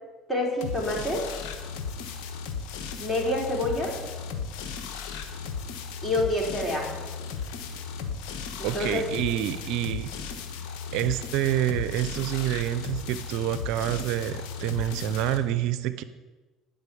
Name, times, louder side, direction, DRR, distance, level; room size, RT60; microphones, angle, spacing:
voice 1, 0.3-1.3 3.0-4.0 6.0-7.0 8.6-9.0, left 1 dB, 15° left, -2 dB, 3.9 m, -27 dB
sound 1, 0.6-15.4, left 6 dB, 75° left, 1.2 m, -36 dB
voice 2, 8.6-10.1 10.9-16.0, right 12 dB, 70° right, 13 dB, 0.5 m, -27 dB
10.5 x 5.2 x 8.4 m, 1.2 s
supercardioid pair, 80°, 0 cm